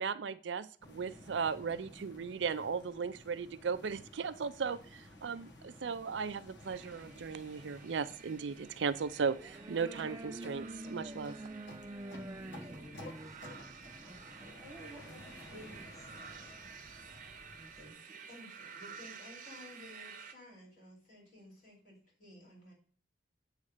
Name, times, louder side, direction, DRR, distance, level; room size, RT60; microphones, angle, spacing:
voice 1, 0.0-11.4, right 5 dB, 75° right, 13 dB, 0.4 m, -37 dB
sound 1, 0.8-17.9, left 1 dB, 75° left, 1.3 m, -54 dB
sound 2, 6.6-20.3, right 6 dB, 45° right, 0.8 m, -52 dB
sound 3, 9.2-14.4, right 2 dB, 20° right, 0.4 m, -47 dB
voice 2, 12.4-13.7 14.0-16.5 17.6-18.2, right 1 dB, ahead, -2 dB, 1.9 m, -54 dB
voice 3, 18.3-22.7, left 1 dB, 45° left, -2 dB, 4.2 m, -55 dB
8.3 x 3.3 x 6.5 m, 0.43 s
head